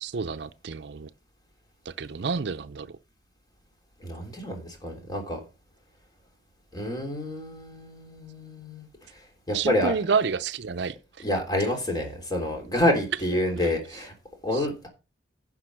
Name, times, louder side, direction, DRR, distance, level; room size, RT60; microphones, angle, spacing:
voice 1, 0.0-1.1 1.9-2.9 9.5-11.0 14.5-14.7, right 5 dB, 65° right, 0.5 m, -29 dB
voice 2, 4.0-5.4 6.7-8.9 9.5-10.0 11.2-14.1 14.4-14.9, left 1 dB, 20° left, 3.3 m, -28 dB
10.5 x 5.9 x 6.2 m
head